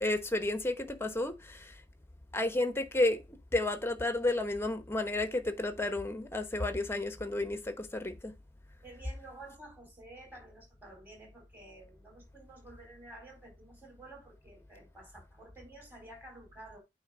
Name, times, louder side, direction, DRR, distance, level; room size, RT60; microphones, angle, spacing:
voice 1, 0.0-1.8 2.3-3.2 3.5-8.3, left 2 dB, 15° left, 1.0 m, -31 dB
voice 2, 8.8-16.8, right 2 dB, 10° right, 4.0 m, -52 dB
9.0 x 3.3 x 5.0 m
head